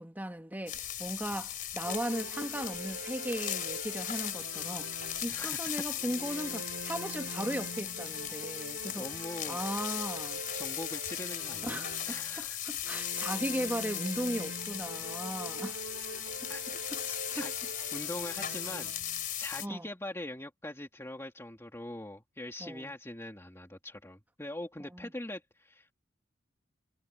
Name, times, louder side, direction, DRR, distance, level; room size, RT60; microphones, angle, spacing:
voice 1, 0.0-9.1 9.5-10.4 11.6-15.8 16.4-16.5 16.9-17.0 17.4-17.5 19.6-19.9 22.6-22.9 24.9-25.1, right 1 dB, 10° right, 1.6 m, -37 dB
sound 1, 0.7-19.7, left 11 dB, 45° left, 3.4 m, -38 dB
sound 2, 1.8-5.6 6.0-12.4 12.8-19.3, right 2 dB, 65° right, 5.7 m, -45 dB
voice 2, 5.3-5.8 6.3-6.7 8.8-9.7 10.5-12.6 15.4-15.6 16.5-16.6 17.0-17.5 17.9-18.9 19.4-25.9, left 1 dB, 15° left, 2.4 m, -42 dB
head